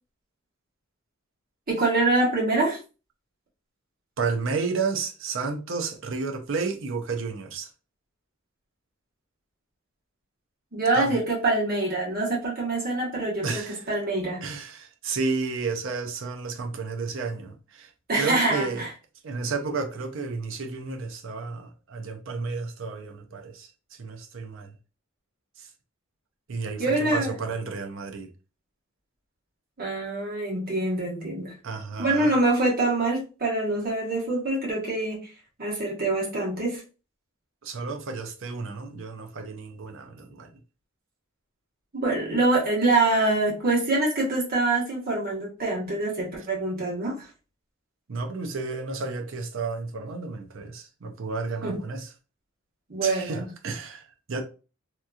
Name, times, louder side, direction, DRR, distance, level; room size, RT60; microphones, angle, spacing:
voice 1, 1.7-2.8 10.7-14.4 18.1-18.9 26.8-27.3 29.8-31.5 32.0-35.3 35.6-36.8 41.9-47.3 51.6-51.8 52.9-53.5, right 2 dB, 45° right, 1.3 m, -25 dB
voice 2, 4.2-7.7 10.9-11.1 13.4-13.8 14.4-17.9 18.2-18.8 19.2-23.7 24.0-24.7 25.6-25.7 26.5-26.8 27.1-28.3 31.6-32.3 37.6-40.5 48.1-52.1 53.0-53.4 53.6-54.4, right 4 dB, 65° right, 0.6 m, -32 dB
2.9 x 2.6 x 2.3 m
head